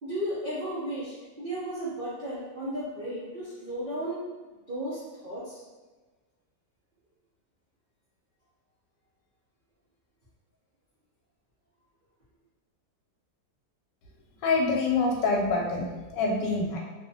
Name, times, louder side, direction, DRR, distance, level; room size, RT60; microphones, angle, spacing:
voice 1, 0.0-4.2 4.7-5.6, right 1 dB, 70° right, -10 dB, 0.4 m, -34 dB
voice 2, 14.4-16.8, left 3 dB, 85° left, 0 dB, 1.2 m, -26 dB
2.9 x 2.0 x 2.6 m, 1.3 s
omnidirectional pair, 1.9 m